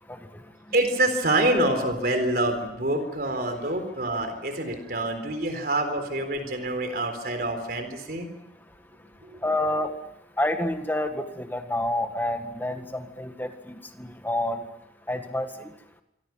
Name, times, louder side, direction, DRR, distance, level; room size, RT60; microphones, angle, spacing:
voice 1, 0.7-8.3 9.2-9.4, right 1 dB, 55° right, 7 dB, 3.9 m, -26 dB
voice 2, 9.4-9.9 10.4-14.6 15.1-15.5, left 1 dB, 10° left, 6 dB, 1.8 m, -28 dB
27.0 x 24.5 x 6.0 m, 0.81 s
head